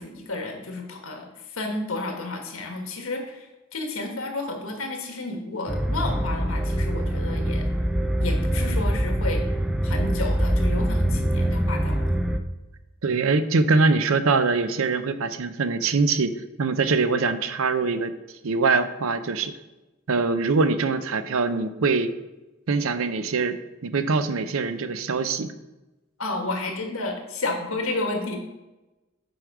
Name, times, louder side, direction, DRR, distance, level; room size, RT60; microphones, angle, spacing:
voice 1, 0.0-7.7 8.2-9.4 9.8-12.1 26.2-28.4, left 2 dB, 80° left, 3 dB, 1.5 m, -31 dB
sound 1, 5.7-12.4, equal, ahead, 0.4 m, -24 dB
voice 2, 13.0-18.1 18.4-19.5 20.1-22.1 22.7-23.6 23.8-25.5, right 4 dB, 75° right, 11 dB, 0.6 m, -23 dB
7.8 x 5.0 x 4.9 m, 1.0 s
head